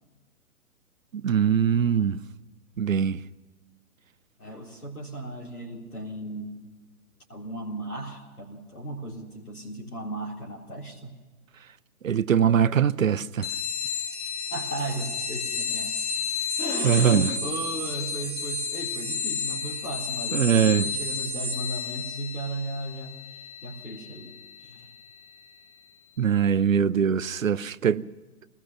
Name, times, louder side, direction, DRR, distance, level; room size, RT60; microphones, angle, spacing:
voice 1, 1.2-2.2 2.8-3.2 12.0-13.5 16.8-17.3 20.3-20.9 26.2-28.0, right 8 dB, 65° right, 0.8 m, -22 dB
voice 2, 4.4-6.6 7.3-11.1 14.5-16.0 16.6-24.9, right 1 dB, 80° left, 3.9 m, -36 dB
sound 1, 13.4-25.5, left 4 dB, 60° left, 3.9 m, -32 dB
24.0 x 19.5 x 6.0 m
figure-of-eight pair, 125°, 43 cm